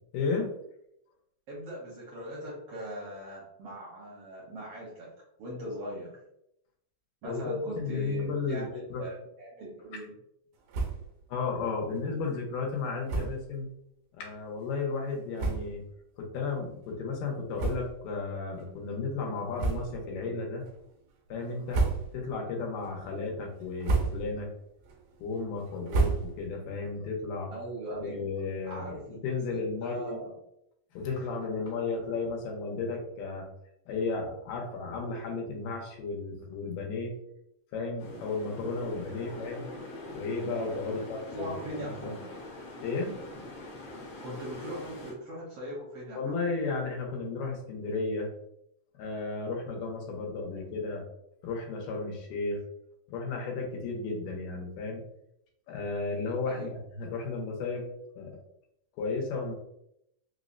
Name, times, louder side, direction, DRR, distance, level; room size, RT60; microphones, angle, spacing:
voice 1, 0.1-0.5 7.2-9.0 11.3-13.7 14.1-15.8 16.2-20.7 21.3-21.8 22.1-24.5 25.2-27.5 27.9-28.8 29.2-30.2 30.9-33.5 33.9-37.1 37.7-39.7 40.1-42.1 42.8-43.1 46.2-48.3 48.9-51.0 51.4-52.6 53.1-55.0 55.7-57.8 58.2-58.3 59.0-59.5, left 4 dB, 85° left, 1 dB, 2.4 m, -33 dB
voice 2, 1.5-5.1 5.4-6.2 7.2-10.1 27.5-28.2 28.6-30.3 31.9-32.1 39.2-39.3 40.9-41.0 41.3-42.3 44.2-46.4 56.5-56.7, right 1 dB, 70° right, -5 dB, 1.4 m, -40 dB
sound 1, 10.7-11.2 11.5-11.6 11.9-12.0 13.0-13.5 14.2-14.3 15.0-15.1 15.3-15.9 16.4-16.6 17.5-18.2 18.5-18.7 19.5-20.1 20.6-21.0 21.5-22.4 22.8-23.2 23.6-24.5 24.8-26.7, right 4 dB, 85° right, 2.4 m, -32 dB
sound 2, 38.0-45.1, left 1 dB, 65° left, 1.3 m, -44 dB
5.5 x 2.0 x 2.5 m, 0.78 s
omnidirectional pair, 3.7 m